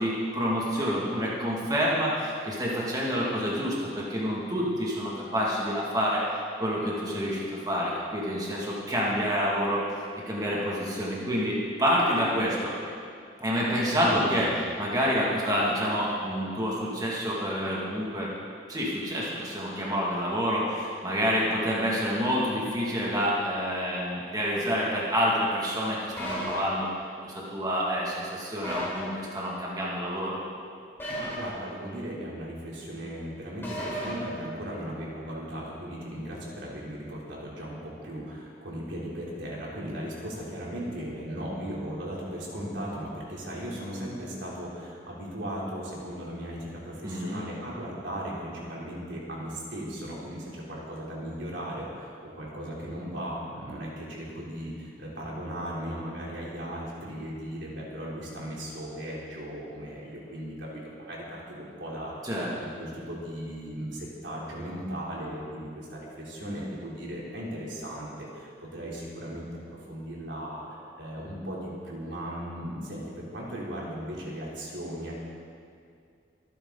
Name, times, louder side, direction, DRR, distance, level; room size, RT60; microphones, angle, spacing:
voice 1, 0.0-6.2 6.6-12.7 13.4-14.5 14.8-18.3 18.7-26.9 27.2-30.4 47.0-47.4 62.2-62.5, equal, 20° right, -5 dB, 2.4 m, -28 dB
voice 2, 13.8-14.6 31.1-75.1, equal, 85° right, -5 dB, 3.6 m, -37 dB
sound 1, 26.2-26.6 28.6-29.0 31.0-31.4 33.6-34.1, equal, 15° left, 4.2 m, -33 dB
23.5 x 10.0 x 4.1 m, 2.4 s
head